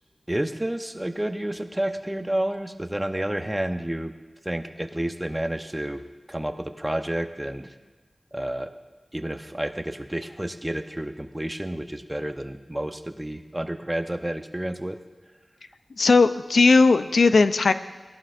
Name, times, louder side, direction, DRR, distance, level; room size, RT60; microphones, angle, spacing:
voice 1, 0.3-4.1 4.4-6.0 6.3-7.8 8.3-8.8 9.1-15.0, right 1 dB, 15° right, 7 dB, 0.7 m, -30 dB
voice 2, 16.0-17.7, left 4 dB, 90° left, 11 dB, 0.4 m, -17 dB
17.5 x 11.5 x 2.5 m, 1.3 s
wide cardioid pair, 70°, 0 cm